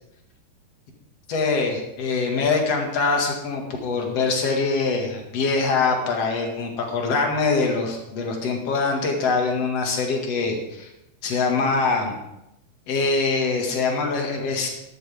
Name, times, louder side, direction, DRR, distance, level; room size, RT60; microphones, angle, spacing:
voice 1, 1.3-10.9 11.2-12.1 12.9-14.7, left 4 dB, 50° left, 2 dB, 2.7 m, -23 dB
13.5 x 12.5 x 3.6 m, 0.86 s
omnidirectional pair, 4.2 m